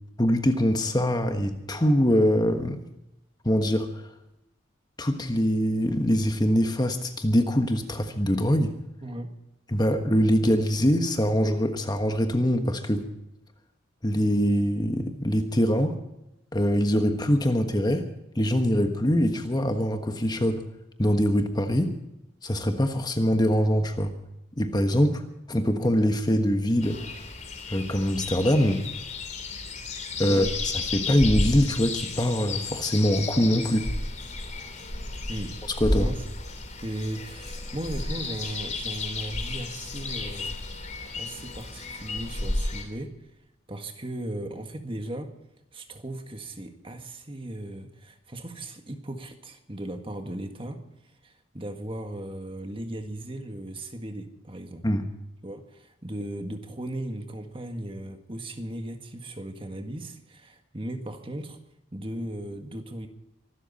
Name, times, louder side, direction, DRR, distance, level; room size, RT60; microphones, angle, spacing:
voice 1, 0.2-2.8 3.4-4.0 5.0-8.7 9.7-13.1 14.0-16.0 16.5-18.1 18.3-20.6 21.0-21.9 22.4-24.1 24.6-25.2 25.5-27.0 27.7-28.8 30.2-33.9 35.8-36.1 54.8-55.1, equal, 20° left, 6 dB, 1.4 m, -23 dB
voice 2, 9.0-9.3 30.3-30.5 35.3-35.6 36.0-36.2 36.8-40.6 41.2-43.1 43.7-45.3 45.7-50.8 51.2-54.9 55.4-61.6 61.9-63.1, right 1 dB, 25° right, 6 dB, 1.7 m, -37 dB
sound 1, 26.8-42.8, left 2 dB, 40° left, 3.0 m, -33 dB
25.0 x 13.0 x 4.2 m, 0.87 s
head